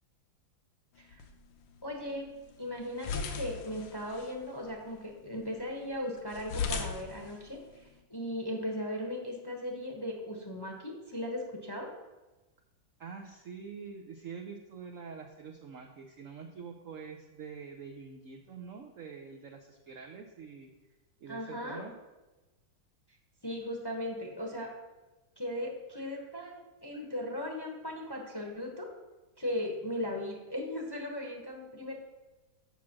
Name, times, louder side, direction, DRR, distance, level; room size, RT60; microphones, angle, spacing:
sound 1, 1.0-8.0, left 5 dB, 70° left, 1.5 m, -40 dB
voice 1, 1.8-11.9 21.3-21.8 23.4-24.7 25.4-28.9 29.4-31.9, left 1 dB, 20° left, 0 dB, 0.8 m, -37 dB
voice 2, 13.0-20.7 21.2-21.9, right 6 dB, 80° right, 2 dB, 0.7 m, -45 dB
7.1 x 6.3 x 6.0 m, 1.1 s
omnidirectional pair, 2.3 m